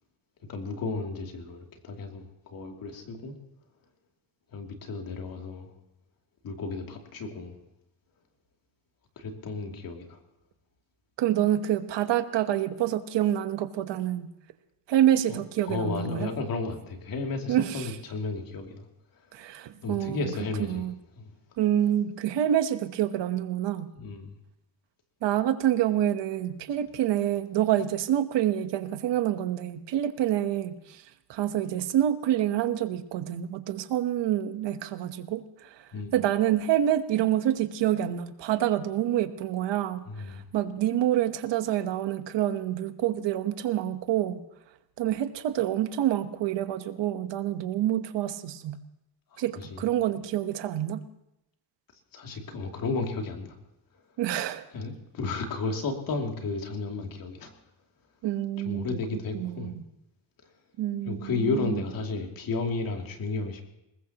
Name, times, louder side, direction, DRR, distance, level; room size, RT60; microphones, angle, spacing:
voice 1, 0.5-3.3 4.5-5.7 6.4-7.6 9.2-10.2 15.3-15.4 15.6-18.9 19.1-19.2 19.8-20.8 21.2-21.3 24.0-24.4 35.9-36.1 40.1-40.4 49.3-49.9 52.1-53.6 53.9-54.0 54.7-57.5 58.6-59.7 61.0-63.6, left 3 dB, 50° left, 2 dB, 2.9 m, -33 dB
voice 2, 11.2-14.3 14.9-16.3 17.5-17.9 19.3-20.2 20.7-20.9 21.6-23.9 25.2-31.0 31.3-44.4 45.0-48.8 49.4-51.0 54.2-54.7 58.2-58.9 59.3-59.8 60.8-61.8, right 12 dB, 75° right, 10 dB, 1.2 m, -27 dB
22.5 x 20.0 x 3.0 m, 0.88 s
cardioid pair, 170°, 43 cm